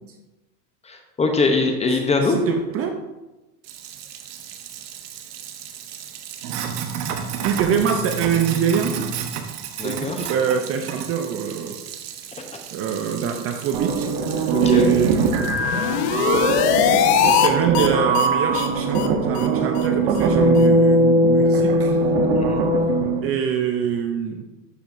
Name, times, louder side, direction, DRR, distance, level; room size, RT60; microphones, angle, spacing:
voice 1, 0.8-2.4 9.8-10.3 14.5-14.9 22.3-22.6, left 3 dB, 15° left, 4 dB, 0.7 m, -22 dB
voice 2, 1.9-3.0 7.4-9.0 9.8-11.8 12.7-14.1 14.6-15.8 17.2-22.0 23.2-24.4, right 7 dB, 30° right, 5 dB, 0.5 m, -25 dB
Sink (filling or washing), 3.6-15.6, right 7 dB, 75° right, 1.1 m, -33 dB
sound 1, 13.7-23.3, right 2 dB, 45° right, 1.1 m, -20 dB
sound 2, 15.5-17.5 17.7-17.9 18.1-18.3 18.5-18.7 18.9-19.1 19.3-19.5 19.8-19.9 20.2-20.3 20.6-20.7, left 9 dB, 75° left, 1.0 m, -20 dB
12.5 x 5.1 x 2.6 m, 1.1 s
supercardioid pair, 125°, 48 cm